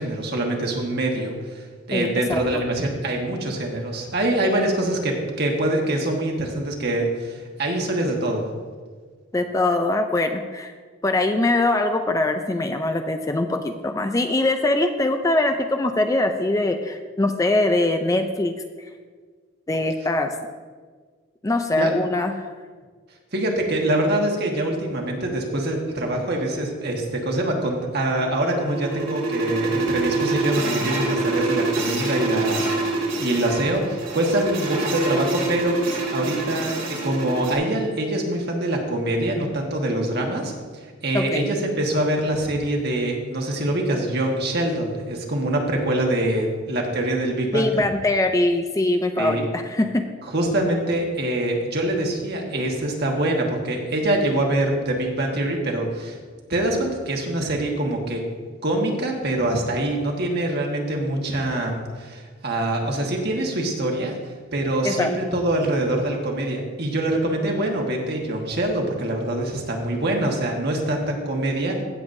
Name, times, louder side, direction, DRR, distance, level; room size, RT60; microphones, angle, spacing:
voice 1, 0.0-8.5 21.8-21.9 23.3-47.7 49.2-49.4 50.2-56.2 56.5-58.2 58.6-64.1 64.5-71.8, right 1 dB, 55° right, 1 dB, 1.5 m, -24 dB
voice 2, 1.9-2.6 9.3-10.7 11.0-18.5 19.7-20.3 21.4-22.3 41.1-41.5 47.5-50.1 64.8-65.1, left 2 dB, 15° left, 6 dB, 0.4 m, -22 dB
sound 1, 28.1-37.5, right 2 dB, 75° right, 2.4 m, -26 dB
16.0 x 7.1 x 2.7 m, 1.5 s
head